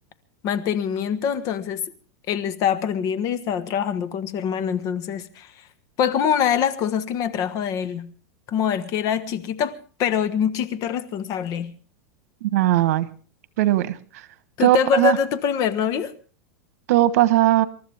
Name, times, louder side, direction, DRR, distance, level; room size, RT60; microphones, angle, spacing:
voice 1, 0.4-1.8 2.3-5.5 6.0-8.1 8.5-11.7 14.6-16.1, left 8 dB, 40° left, 1.3 m, -24 dB
voice 2, 12.4-13.1 13.6-14.0 14.6-15.2 16.9-17.6, right 14 dB, 70° right, 1.3 m, -18 dB
27.5 x 13.0 x 3.6 m
supercardioid pair, 130°, 9 cm